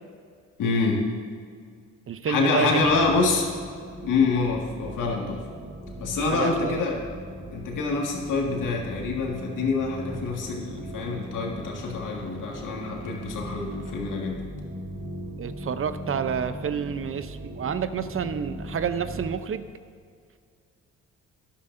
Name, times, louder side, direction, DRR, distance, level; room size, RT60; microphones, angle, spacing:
voice 1, 0.6-1.0 2.3-3.5 4.0-5.4 5.9-7.0 7.5-14.4, left 4 dB, 70° left, 0 dB, 2.0 m, -26 dB
voice 2, 2.1-2.9 6.2-6.8 15.4-19.6, right 7 dB, 40° right, 12 dB, 0.7 m, -29 dB
sound 1, 2.8-19.4, right 1 dB, 25° right, 1.7 m, -39 dB
12.0 x 11.0 x 2.7 m, 2.2 s
supercardioid pair, 60°, 33 cm